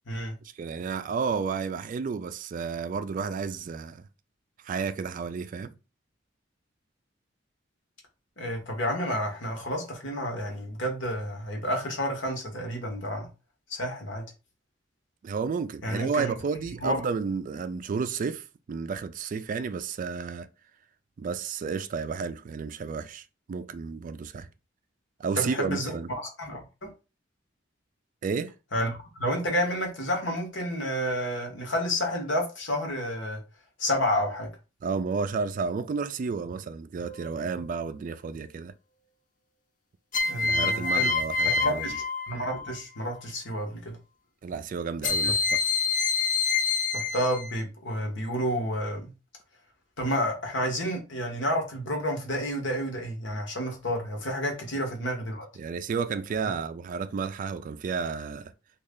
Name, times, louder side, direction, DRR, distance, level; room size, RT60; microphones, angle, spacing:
voice 1, 0.6-4.0 4.6-5.7 15.2-20.5 21.2-24.5 25.2-26.1 28.2-28.5 34.8-38.7 40.4-41.9 44.4-45.7 55.6-58.5, right 5 dB, 45° right, 0.3 m, -32 dB
voice 2, 8.4-13.3 13.7-14.2 15.8-16.3 16.8-17.0 25.4-26.9 28.7-33.4 33.8-34.5 40.2-41.1 41.4-41.9 42.3-44.0 45.2-45.3 46.9-49.1 50.0-55.4, equal, 70° left, 1.1 m, -30 dB
sound 1, 37.0-37.6 40.1-42.8 45.0-47.6, left 4 dB, 45° left, 0.5 m, -27 dB
3.1 x 2.4 x 3.6 m
head